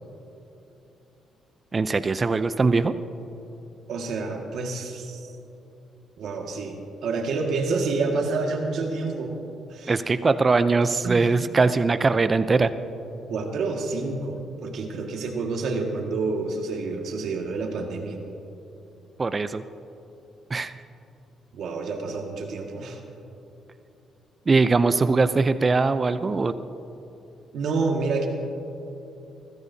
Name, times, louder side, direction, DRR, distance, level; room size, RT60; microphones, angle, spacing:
voice 1, 1.7-2.9 9.9-12.7 19.2-19.6 20.5-20.7 24.5-26.5, right 3 dB, 30° right, 12 dB, 0.5 m, -21 dB
voice 2, 3.9-5.2 6.2-6.8 7.0-9.3 9.7-10.0 11.0-11.3 13.3-18.2 21.5-23.0 27.5-28.3, right 3 dB, 70° right, 1 dB, 1.8 m, -28 dB
20.0 x 15.0 x 2.8 m, 2.9 s
cardioid pair, 90°, 0 cm